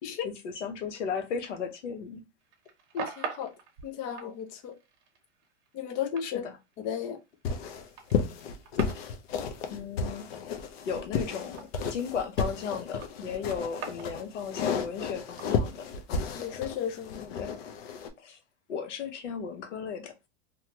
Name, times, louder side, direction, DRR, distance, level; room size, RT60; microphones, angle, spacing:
voice 1, 0.2-2.2 6.2-6.6 8.9-9.1 9.7-10.3 10.8-15.8 17.4-17.5 18.2-18.4 18.7-20.1, left 6 dB, 90° left, 0.9 m, -35 dB
sound 1, 2.4-12.1 12.4-16.4, right 6 dB, 35° right, 0.8 m, -43 dB
voice 2, 2.9-3.5 3.8-4.7 5.7-6.5 6.8-7.2 16.4-17.6, left 8 dB, 25° left, 0.3 m, -34 dB
sound 2, 7.4-18.1, left 5 dB, 60° left, 0.6 m, -33 dB
2.8 x 2.2 x 2.8 m
supercardioid pair, 135°, 35 cm